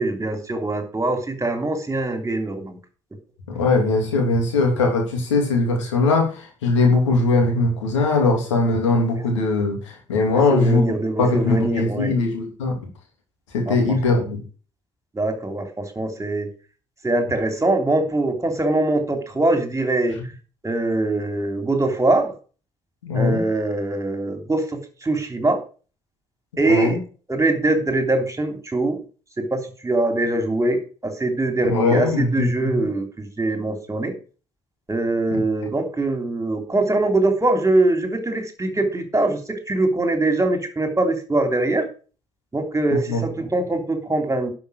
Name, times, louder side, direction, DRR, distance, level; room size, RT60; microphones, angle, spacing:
voice 1, 0.0-2.8 10.5-12.1 13.7-14.2 15.1-16.5 17.0-20.2 20.6-22.3 23.1-25.6 26.6-27.0 27.3-29.0 29.4-34.1 34.9-41.9 42.5-44.5, right 2 dB, 20° right, 6 dB, 3.3 m, -22 dB
voice 2, 3.5-10.8 11.2-12.8 13.5-14.4 23.0-23.4 26.7-27.0 31.6-32.8 35.3-35.4 43.1-43.2, left 3 dB, 85° left, 2 dB, 3.0 m, -20 dB
11.5 x 5.8 x 6.5 m, 0.37 s
figure-of-eight pair, 45°, 15 cm